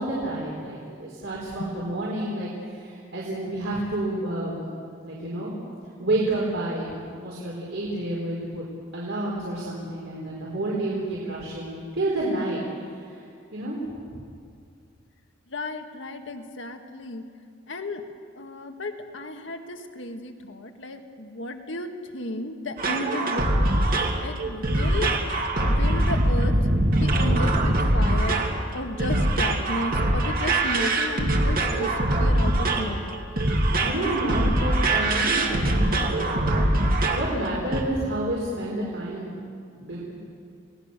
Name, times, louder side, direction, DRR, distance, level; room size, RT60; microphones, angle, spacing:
voice 1, 0.0-4.7 5.0-5.5 6.0-6.9 7.2-8.7 8.9-12.6 12.9-13.2 13.5-13.8 33.6-39.4 39.7-40.1, right 1 dB, 70° right, -5 dB, 4.7 m, -30 dB
voice 2, 15.5-17.2 17.7-18.0 18.4-23.8 24.2-25.2 25.6-26.5 26.9-28.4 28.7-33.3, left 1 dB, 70° left, 5 dB, 1.9 m, -34 dB
sound 1, 22.8-37.3 37.7-37.8, right 1 dB, 50° right, 2.3 m, -23 dB
29.5 x 18.5 x 6.8 m, 2.3 s
head